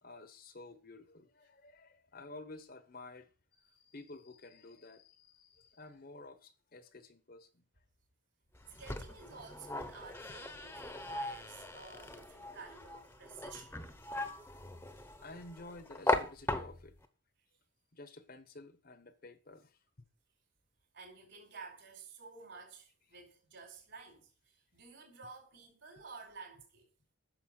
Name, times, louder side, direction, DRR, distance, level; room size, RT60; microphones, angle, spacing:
voice 1, 0.0-3.3 3.6-7.6 15.2-17.0 17.9-20.1, left 2 dB, 45° left, 1.0 m, -52 dB
sound 1, 8.5-17.1, left 2 dB, 10° left, 1.0 m, -39 dB
voice 2, 8.8-13.9 20.9-26.8, right 4 dB, 55° right, 5.2 m, -52 dB
10.0 x 6.7 x 6.5 m
head